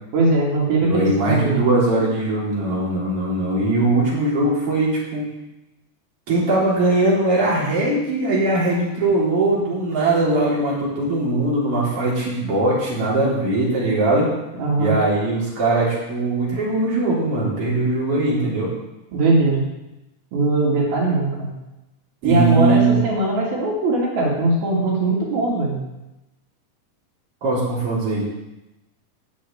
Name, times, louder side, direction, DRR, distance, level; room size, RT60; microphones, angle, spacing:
voice 1, 0.1-1.6 14.6-15.0 19.1-19.6 20.3-21.5 22.2-25.8, right 2 dB, 85° right, -4 dB, 4.3 m, -20 dB
voice 2, 0.8-5.3 6.3-14.3 14.8-18.7 22.2-23.0 27.4-28.3, right 2 dB, 40° right, -7 dB, 4.7 m, -20 dB
9.9 x 6.6 x 8.8 m, 0.96 s
omnidirectional pair, 4.2 m